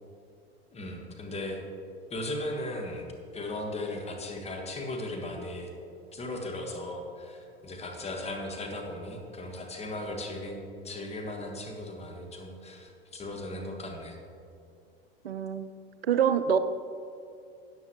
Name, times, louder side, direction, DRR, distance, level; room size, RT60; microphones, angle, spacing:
voice 1, 0.7-1.6 2.1-3.1 3.3-5.7 6.1-14.2, left 1 dB, 20° left, 2 dB, 1.7 m, -37 dB
voice 2, 15.2-15.7 16.0-16.6, right 8 dB, 80° right, 11 dB, 0.6 m, -25 dB
13.5 x 9.1 x 3.1 m, 2.5 s
figure-of-eight pair, 85°, 30 cm